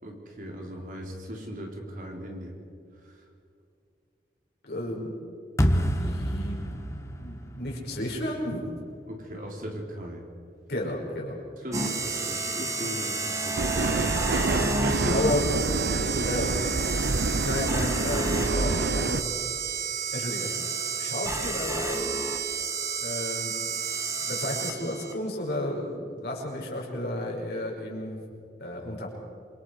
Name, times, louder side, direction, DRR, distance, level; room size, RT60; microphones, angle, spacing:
voice 1, 0.0-2.6 3.0-3.2 9.1-10.2 11.6-14.2 14.7-15.2 15.8-16.8, equal, 50° right, 0 dB, 3.8 m, -38 dB
voice 2, 4.6-5.1 5.9-8.7 10.7-11.4 15.1-15.5 16.2-16.5 17.4-19.4 20.1-22.2 23.0-23.8 24.2-28.2 28.6-29.1, left 1 dB, 65° left, -2 dB, 5.8 m, -33 dB
sound 1, 5.6-8.7, equal, 15° left, 1.4 m, -28 dB
sound 2, 11.7-25.1, right 4 dB, 20° right, 1.7 m, -30 dB
sound 3, 13.6-19.2, right 3 dB, 75° right, 0.7 m, -27 dB
27.5 x 25.0 x 4.9 m, 2.4 s
head